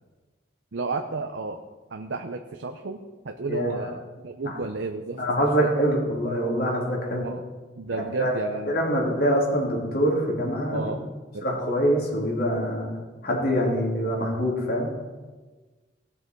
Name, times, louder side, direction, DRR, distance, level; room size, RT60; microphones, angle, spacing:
voice 1, 0.7-1.6 1.9-5.2 5.6-5.7 7.2-7.4 7.8-8.9 10.7-11.0 11.3-11.4, right 3 dB, 70° right, 5 dB, 0.7 m, -32 dB
voice 2, 3.5-3.8 4.4-4.6 5.2-7.3 7.9-8.3 8.7-10.8 11.4-13.0 13.2-14.9, equal, 55° left, -2 dB, 3.2 m, -25 dB
18.0 x 6.8 x 4.6 m, 1.3 s
head